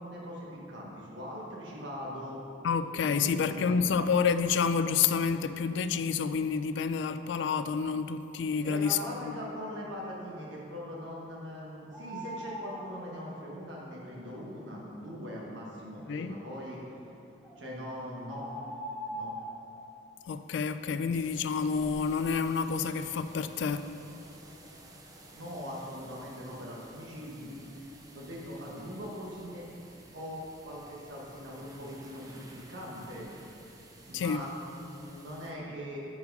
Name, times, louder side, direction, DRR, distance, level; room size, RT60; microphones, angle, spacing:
voice 1, 0.0-2.4 3.0-3.8 8.6-16.8 17.6-18.5 19.1-19.3 25.3-27.6 28.1-29.7 30.1-33.3 34.1-36.0, equal, 75° right, 1.2 m, -41 dB
voice 2, 2.6-9.3 16.1-16.4 20.3-23.9 34.1-34.4, left 6 dB, 65° left, 0.3 m, -29 dB
sound 1, 11.9-12.8 17.4-17.6 18.3-19.5, equal, ahead, 1.3 m, -40 dB
sound 2, 21.1-35.5, right 2 dB, 20° right, 0.7 m, -53 dB
8.3 x 4.6 x 5.3 m
head